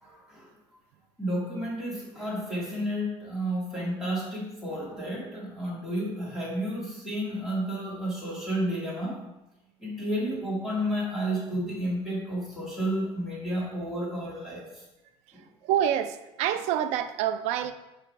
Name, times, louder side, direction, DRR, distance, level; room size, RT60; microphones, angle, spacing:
voice 1, 0.0-0.5 1.2-9.2 9.8-14.7 15.3-15.4, equal, 5° right, -7 dB, 2.1 m, -31 dB
voice 2, 15.6-17.7, right 10 dB, 75° right, 11 dB, 0.4 m, -27 dB
5.0 x 4.9 x 4.5 m, 0.96 s
cardioid pair, 150°, 11 cm